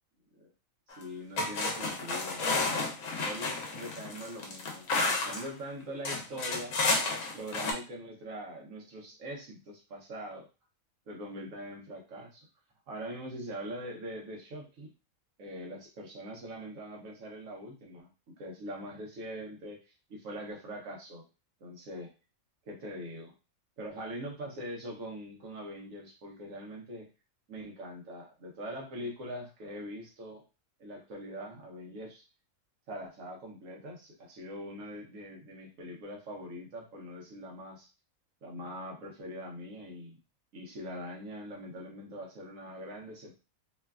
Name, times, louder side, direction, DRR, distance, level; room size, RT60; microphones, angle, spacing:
sound 1, 0.9-1.0 1.4-5.5 6.0-7.7, left 3 dB, 75° left, 1.0 m, -31 dB
voice 1, 1.0-2.9 3.2-6.7 7.3-10.5 11.1-12.5 12.9-14.9 15.4-18.1 18.4-21.2 21.6-22.1 22.6-23.3 23.8-27.1 27.5-30.4 30.8-32.2 32.9-37.9 38.4-40.2 40.5-43.4, equal, 70° right, -1 dB, 1.2 m, -42 dB
3.1 x 2.3 x 2.3 m, 0.31 s
omnidirectional pair, 1.5 m